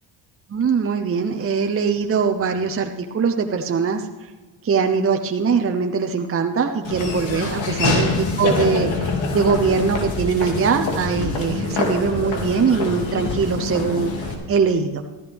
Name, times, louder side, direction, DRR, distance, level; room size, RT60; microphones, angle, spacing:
voice 1, 0.5-4.0 4.6-15.0, right 5 dB, 30° right, 4 dB, 0.8 m, -22 dB
Laughter / Walk footsteps, 6.8-14.3, left 3 dB, 80° left, 2.6 m, -25 dB
14.5 x 14.0 x 3.5 m, 1.3 s
cardioid pair, 95°, 45 cm